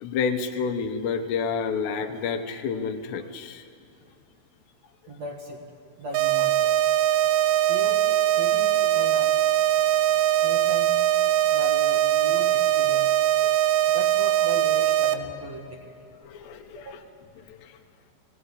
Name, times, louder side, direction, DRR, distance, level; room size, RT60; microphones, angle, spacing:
voice 1, 0.0-3.6 11.3-11.6 16.2-17.0 17.4-17.8, left 5 dB, 80° left, 6 dB, 3.2 m, -30 dB
voice 2, 5.1-5.6 6.0-6.7 7.7-9.3 10.4-11.0 11.5-13.2 13.9-16.0 16.4-16.5 16.8-17.1, right 1 dB, 50° right, 0 dB, 2.3 m, -38 dB
sound 1, 6.1-15.1, right 13 dB, 90° right, 3.0 m, -21 dB
21.0 x 18.0 x 9.8 m, 2.7 s
omnidirectional pair, 4.9 m